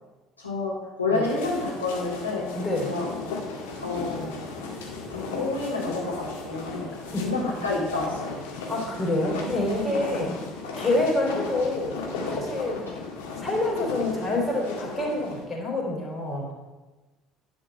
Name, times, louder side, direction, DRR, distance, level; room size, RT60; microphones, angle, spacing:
voice 1, 0.4-2.5 2.8-3.1 3.8-4.5 5.1-6.9 7.2-8.3 10.1-10.3 12.7-12.8, left 3 dB, 85° left, -6 dB, 3.2 m, -29 dB
sound 1, 1.2-15.5, left 3 dB, 65° left, 1.9 m, -36 dB
voice 2, 2.5-2.9 7.1-7.3 8.7-10.3 10.8-12.0 12.3-12.8 13.4-16.5, left 2 dB, 20° left, -2 dB, 4.1 m, -27 dB
11.0 x 5.3 x 6.9 m, 1.2 s
figure-of-eight pair, 55°, 0 cm